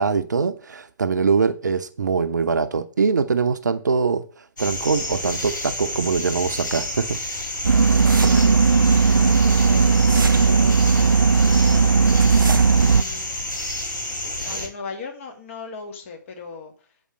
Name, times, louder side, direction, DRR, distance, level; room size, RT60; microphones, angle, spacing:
voice 1, 0.0-4.2 4.6-7.2, right 5 dB, 60° right, 0.8 m, -22 dB
sound 1, 4.6-14.7, left 1 dB, 65° left, 4.1 m, -30 dB
sound 2, 7.6-13.0, right 5 dB, 80° right, 0.4 m, -16 dB
voice 2, 8.2-13.8 14.4-16.9, left 4 dB, 40° left, 2.2 m, -38 dB
8.6 x 5.1 x 6.2 m
figure-of-eight pair, 130°, 11 cm